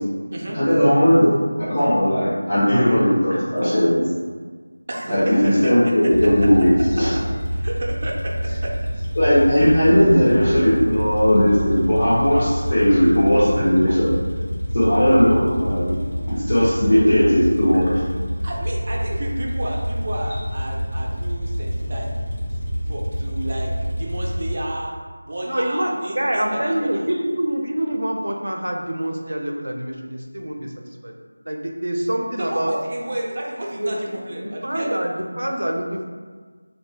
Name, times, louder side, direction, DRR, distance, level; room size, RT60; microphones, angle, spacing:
voice 1, 0.5-4.0 5.1-7.1 9.2-14.1 14.7-15.9 16.3-17.9, equal, 25° left, -12 dB, 0.6 m, -17 dB
voice 2, 4.9-6.1 7.5-8.3 8.6-8.7 18.4-22.1 22.9-25.0 25.2-27.1 32.4-35.2, right 1 dB, 30° right, -3 dB, 0.4 m, -31 dB
sound 1, 6.1-24.6, equal, 80° left, 1.4 m, -27 dB
voice 3, 25.5-30.7 31.0-31.1 31.5-32.7 33.8-34.2 34.4-36.1, right 1 dB, 90° right, 2 dB, 0.5 m, -26 dB
3.3 x 2.6 x 2.2 m, 1.5 s
figure-of-eight pair, 175°, 0 cm